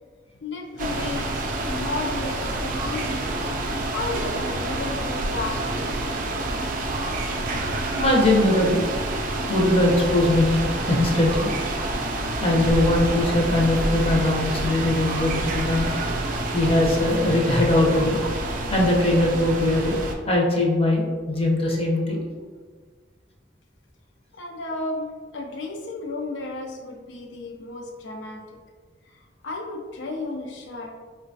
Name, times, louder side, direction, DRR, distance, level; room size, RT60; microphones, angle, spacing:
voice 1, 0.4-3.4 3.9-6.0 15.0-15.1 24.3-28.4 29.1-31.0, left 2 dB, 85° left, 2 dB, 0.5 m, -33 dB
sound 1, 0.8-20.1, right 2 dB, 50° right, 0.3 m, -28 dB
voice 2, 7.9-8.8 9.5-10.6 10.9-11.5 12.4-15.9 16.5-18.2 18.7-20.0 20.3-22.2, left 1 dB, 30° left, -1 dB, 0.5 m, -21 dB
3.8 x 2.2 x 2.6 m, 1.5 s
head